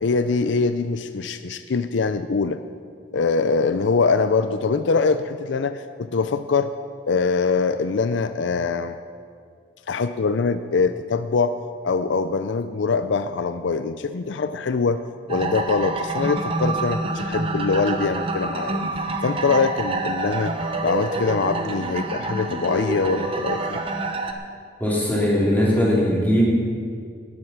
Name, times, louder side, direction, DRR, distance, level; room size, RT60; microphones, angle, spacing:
voice 1, 0.0-2.6 3.1-6.7 7.1-9.0 9.9-11.6 11.8-15.0 15.3-18.8 19.2-20.5 20.8-23.8, left 4 dB, 75° left, 11 dB, 0.5 m, -23 dB
sound 1, 15.3-24.3, right 2 dB, 30° right, 1.0 m, -27 dB
voice 2, 24.8-26.4, left 1 dB, 10° left, -7 dB, 3.7 m, -20 dB
18.5 x 8.1 x 5.9 m, 2.2 s
head